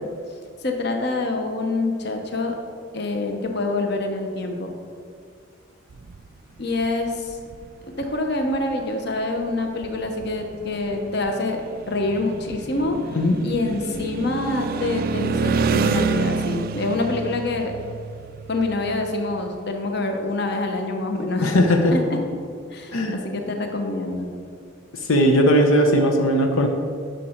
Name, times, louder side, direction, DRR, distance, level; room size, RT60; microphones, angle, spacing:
voice 1, 0.6-2.6 2.9-4.7 6.6-7.3 8.0-13.0 13.4-17.7 18.5-21.5 21.9-22.2 22.7-24.3, left 2 dB, 55° left, 3 dB, 1.0 m, -26 dB
sound 1, 5.9-6.3 6.7-7.7 8.0-8.2 8.5-8.7 9.4-9.5 9.7-19.5, right 5 dB, 45° right, 0.3 m, -28 dB
voice 2, 21.4-21.9 22.9-23.2 25.1-26.7, equal, 85° left, 4 dB, 0.8 m, -18 dB
10.5 x 6.6 x 4.4 m, 2.2 s
head